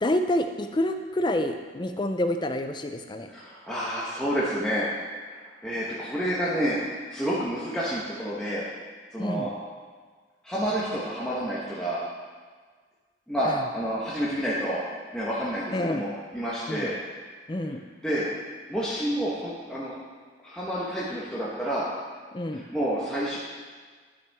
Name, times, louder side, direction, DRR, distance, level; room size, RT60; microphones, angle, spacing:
voice 1, 0.0-3.3 9.2-9.5 13.4-13.6 15.7-16.0 16.7-16.9 17.5-17.8 22.3-22.6, left 1 dB, 25° left, 7 dB, 0.4 m, -28 dB
voice 2, 3.3-4.9 5.6-8.6 9.1-9.5 10.4-12.0 13.3-14.8 15.1-17.0 17.6-17.8 18.0-18.3 18.7-20.0 20.4-21.9 22.5-23.4, equal, 5° left, -8 dB, 1.0 m, -29 dB
11.0 x 6.0 x 3.5 m, 1.5 s
head